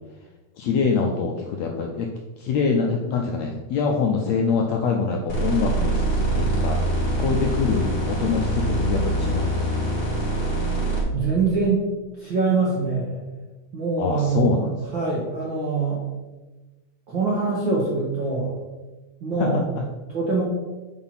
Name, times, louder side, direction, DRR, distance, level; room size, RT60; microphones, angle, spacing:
voice 1, 0.6-2.1 2.4-6.8 7.1-9.7 14.0-14.8 19.3-19.9, left 5 dB, 85° left, 1 dB, 1.5 m, -25 dB
sound 1, 5.3-11.0, right 1 dB, 20° left, 2.1 m, -24 dB
voice 2, 11.1-11.9 12.2-13.2 13.7-14.6 14.9-16.0 17.1-18.6 19.2-19.6 20.1-20.4, right 4 dB, 65° right, -4 dB, 1.2 m, -23 dB
5.7 x 4.8 x 5.7 m, 1.2 s
omnidirectional pair, 3.7 m